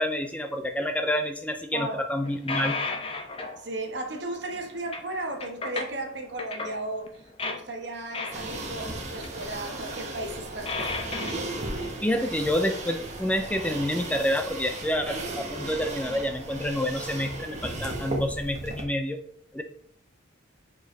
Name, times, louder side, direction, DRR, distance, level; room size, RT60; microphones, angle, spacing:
voice 1, 0.0-2.8 12.0-19.2 19.5-19.6, left 1 dB, 5° left, 0.4 m, -28 dB
sound 1, 2.3-3.6 4.5-5.0 5.4-6.1 6.4-6.8 7.1-7.6 8.1-8.8 9.1-9.5 9.7-10.0 10.7-11.3, left 3 dB, 30° left, 0.8 m, -33 dB
voice 2, 3.6-10.9, right 2 dB, 60° right, 1.2 m, -35 dB
sound 2, 8.3-18.8, right 2 dB, 35° right, 1.3 m, -36 dB
7.5 x 4.7 x 3.3 m
head